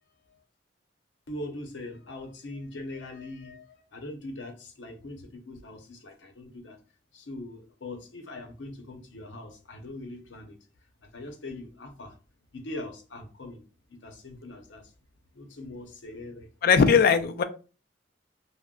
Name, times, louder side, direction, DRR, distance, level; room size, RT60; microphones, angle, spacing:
voice 1, 1.3-6.8 7.1-10.6 11.0-12.2 12.5-13.6 13.9-14.9 15.3-16.5 17.1-17.4, left 2 dB, 75° left, 0.7 m, -41 dB
voice 2, 16.6-17.4, left 6 dB, 55° left, 0.3 m, -19 dB
2.3 x 2.1 x 3.6 m
head